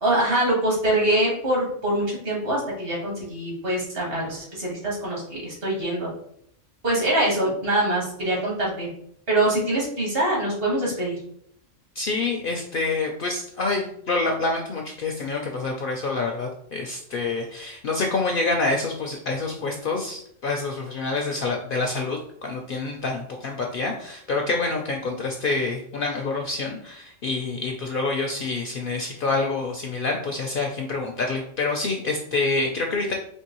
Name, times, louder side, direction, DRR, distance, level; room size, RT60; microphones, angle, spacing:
voice 1, 0.0-6.1 6.8-8.9 9.3-11.2, right 1 dB, 50° right, -4 dB, 1.6 m, -24 dB
voice 2, 12.0-33.1, left 3 dB, 60° left, 1 dB, 0.6 m, -27 dB
4.5 x 2.9 x 2.9 m, 0.69 s
omnidirectional pair, 1.3 m